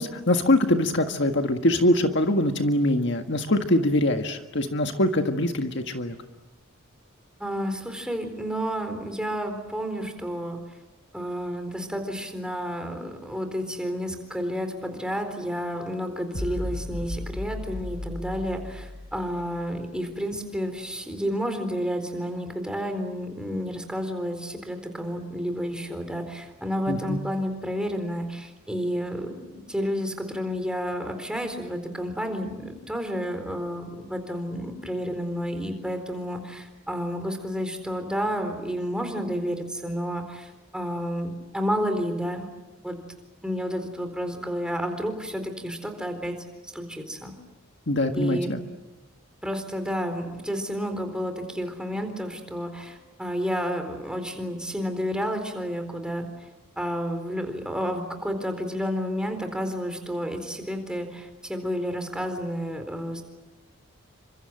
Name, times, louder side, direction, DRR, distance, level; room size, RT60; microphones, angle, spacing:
voice 1, 0.0-6.2 26.9-27.2 47.9-48.6, left 1 dB, 55° left, 5 dB, 1.7 m, -23 dB
voice 2, 7.4-10.6 11.1-42.5 42.8-43.0 43.4-46.3 46.6-47.3 48.1-48.5 49.4-56.5 56.8-63.2, equal, 5° right, 6 dB, 4.1 m, -31 dB
sound 1, 16.3-19.8, left 1 dB, 85° left, 3.8 m, -35 dB
29.5 x 26.0 x 7.8 m, 1.0 s
head